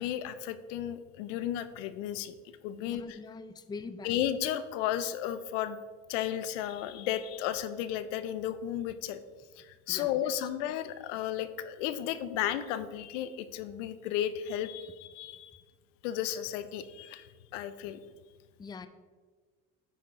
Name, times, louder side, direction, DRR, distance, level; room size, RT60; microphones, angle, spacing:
voice 1, 0.0-2.3 2.6-3.2 4.0-5.8 6.1-9.2 9.6-15.6 16.0-18.0, left 11 dB, 90° left, 12 dB, 0.6 m, -34 dB
voice 2, 2.8-4.2 9.9-10.3 18.6-18.9, left 4 dB, 10° left, 11 dB, 0.4 m, -43 dB
9.1 x 5.8 x 3.6 m, 1.5 s
supercardioid pair, 90°, 36 cm